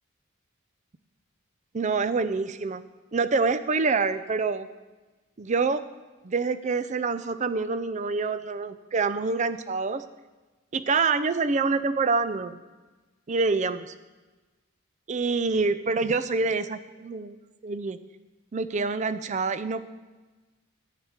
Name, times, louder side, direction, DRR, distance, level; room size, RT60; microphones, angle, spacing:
voice 1, 1.7-2.8 3.1-4.7 5.4-5.8 6.2-10.0 10.7-12.6 13.3-13.9 15.1-17.4 17.6-18.0 18.5-19.9, right 4 dB, 35° right, 13 dB, 0.4 m, -26 dB
10.5 x 5.8 x 8.0 m, 1.2 s
head